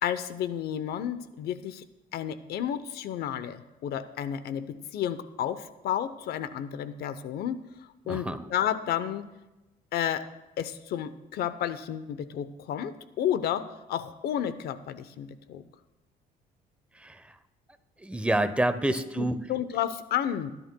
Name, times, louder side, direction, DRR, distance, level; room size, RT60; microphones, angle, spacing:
voice 1, 0.0-1.8 2.1-7.6 8.1-9.3 9.9-10.3 10.6-15.7 19.2-20.5, left 10 dB, 70° left, 13 dB, 0.8 m, -31 dB
voice 2, 8.1-8.5 16.9-17.4 18.0-19.4, right 1 dB, 5° right, 11 dB, 0.7 m, -28 dB
22.0 x 11.0 x 2.2 m, 1.0 s
cardioid pair, 110°, 17 cm